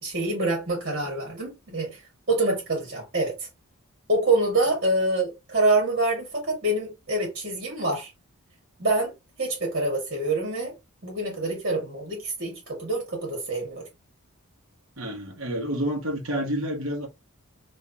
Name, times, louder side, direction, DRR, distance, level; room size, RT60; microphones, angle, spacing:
voice 1, 0.0-2.0 2.3-3.3 4.1-8.1 8.8-9.1 9.4-10.7 11.0-13.8, right 2 dB, 40° right, 1.9 m, -26 dB
voice 2, 15.0-17.1, equal, 60° right, 1.2 m, -29 dB
3.5 x 3.2 x 2.8 m
head